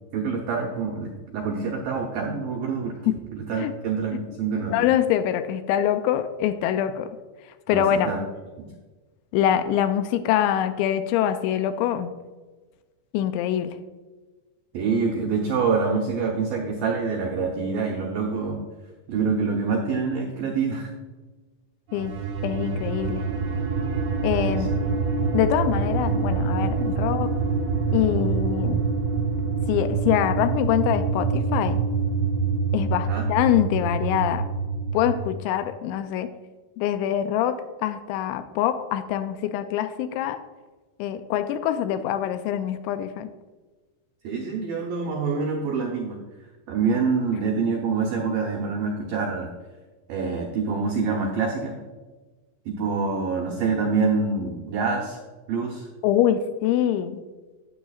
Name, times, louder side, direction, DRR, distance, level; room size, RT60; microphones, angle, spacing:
voice 1, 0.1-4.7 7.7-8.2 8.6-8.7 14.7-18.6 19.1-20.9 24.5-24.6 26.8-26.9 33.1-33.3 44.2-46.2 46.7-49.5 50.1-51.8 52.7-55.2 55.5-55.9, right 5 dB, 90° right, 1 dB, 2.0 m, -26 dB
voice 2, 4.7-7.1 7.7-8.1 9.3-12.1 13.1-13.8 21.9-23.2 24.2-24.7 25.3-27.3 27.9-28.8 29.7-31.8 32.7-34.4 34.9-36.3 36.8-40.4 41.0-43.3 56.0-57.2, left 10 dB, 85° left, 10 dB, 2.7 m, -24 dB
sound 1, 21.9-35.2, right 4 dB, 65° right, 1.9 m, -25 dB
12.5 x 9.3 x 2.4 m, 1.3 s
omnidirectional pair, 5.4 m